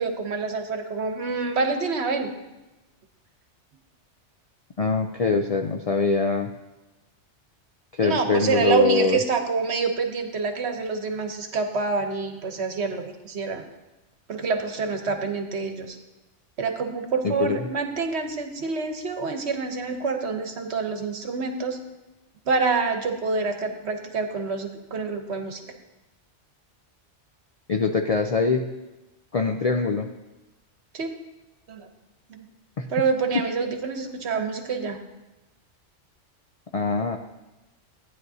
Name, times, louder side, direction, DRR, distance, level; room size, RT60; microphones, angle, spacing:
voice 1, 0.0-2.3 8.0-13.6 14.3-16.0 16.6-21.8 22.5-25.6 30.9-31.1 31.7-31.9 32.3-32.5 32.9-35.0, right 4 dB, 65° right, 5 dB, 1.2 m, -27 dB
voice 2, 4.8-6.5 7.9-9.2 17.2-17.6 27.7-28.7 29.3-30.1 32.8-32.9 36.7-37.2, left 4 dB, 55° left, 4 dB, 0.4 m, -23 dB
15.0 x 9.5 x 2.8 m, 1.0 s
omnidirectional pair, 1.2 m